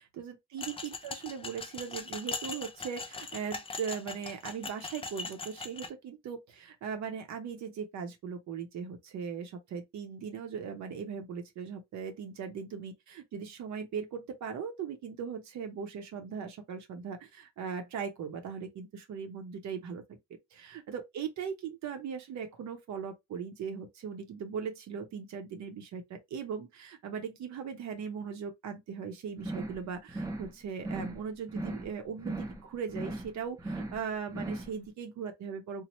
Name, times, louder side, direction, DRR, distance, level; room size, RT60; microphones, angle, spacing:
voice 1, 0.0-20.2 20.5-35.8, right 6 dB, 65° right, 0.7 m, -39 dB
sound 1, 0.6-5.9, left 3 dB, 20° left, 0.4 m, -40 dB
sound 2, 29.4-29.8 30.1-30.5 30.8-31.2 31.5-31.9 32.2-32.6 32.9-33.3 33.6-34.0 34.3-34.7, right 2 dB, 10° right, 0.7 m, -38 dB
2.9 x 2.0 x 2.9 m
cardioid pair, 90°, 30 cm